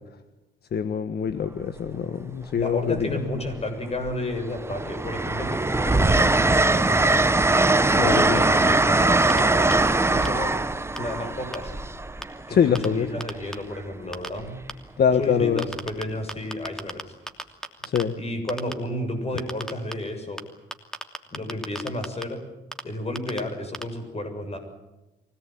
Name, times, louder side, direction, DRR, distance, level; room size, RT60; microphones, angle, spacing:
voice 1, 0.7-3.2 8.0-8.4 12.5-13.1 15.0-15.7 17.8-18.1, left 7 dB, 55° left, 11 dB, 1.4 m, -24 dB
Train, 1.3-1.6 2.9-3.6 4.0-12.8 14.4-14.6, right 2 dB, 15° right, 1.1 m, -21 dB
voice 2, 2.5-7.2 7.9-9.8 10.1-10.6 10.9-11.7 12.5-14.6 15.2-17.0 18.2-20.4 21.3-22.4 22.8-24.6, left 1 dB, 30° left, 6 dB, 7.1 m, -32 dB
sound 1, 9.3-9.4 9.7-9.8 10.3-10.4 11.0-11.1 11.5-11.6 12.2-12.3 12.8-12.9 13.2-13.5 14.1-14.3 14.7-14.8 15.6-16.0 16.3-17.0 17.3-18.0 18.5-18.7 19.4-19.9 20.4-20.5 20.7-22.2 22.7-22.8 23.2-23.4 23.7-23.8, equal, 5° left, 2.9 m, -32 dB
24.0 x 18.5 x 9.3 m, 1.0 s
cardioid pair, 90°, 20 cm